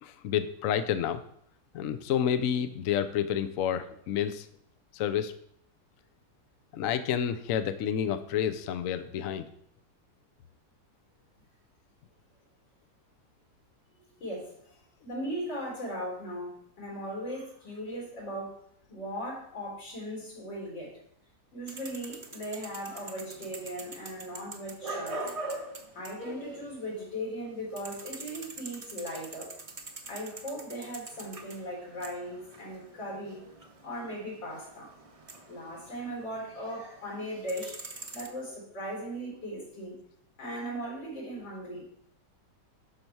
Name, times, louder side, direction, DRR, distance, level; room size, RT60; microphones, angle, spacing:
voice 1, 0.0-1.2 1.7-4.5 4.9-5.3 6.7-9.5, left 9 dB, 65° left, 10 dB, 0.8 m, -29 dB
voice 2, 14.2-18.6 18.9-20.9 21.5-25.2 25.9-29.5 30.0-34.9 35.5-37.8 38.1-40.0 40.4-41.8, equal, 80° left, -4 dB, 4.6 m, -38 dB
sound 1, 21.7-27.1 27.4-36.8 37.1-38.3, right 2 dB, 30° right, 0.6 m, -43 dB
11.5 x 5.6 x 4.6 m, 0.68 s
omnidirectional pair, 2.0 m